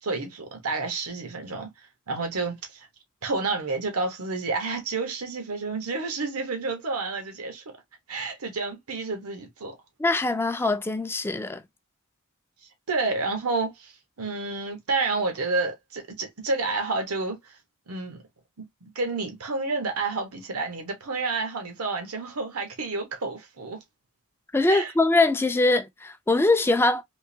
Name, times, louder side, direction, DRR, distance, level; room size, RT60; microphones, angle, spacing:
voice 1, 0.0-2.9 3.2-7.6 8.1-9.8 12.9-17.6 17.9-18.2 18.6-23.8 24.7-24.9, right 3 dB, 85° right, 1.1 m, -30 dB
voice 2, 10.0-11.6 24.5-27.0, left 2 dB, 10° left, 0.4 m, -22 dB
3.7 x 2.9 x 2.7 m
head